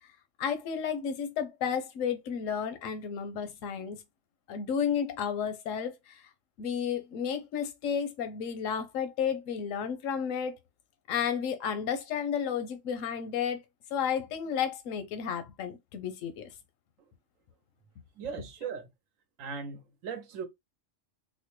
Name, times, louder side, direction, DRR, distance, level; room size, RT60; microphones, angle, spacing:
voice 1, 0.4-4.0 4.5-6.2 6.6-10.5 11.1-13.6 13.9-16.5, left 7 dB, 85° left, 1.0 m, -32 dB
voice 2, 18.2-18.9 19.4-20.5, right 6 dB, 90° right, 1.1 m, -38 dB
4.2 x 2.1 x 3.0 m
omnidirectional pair, 1.3 m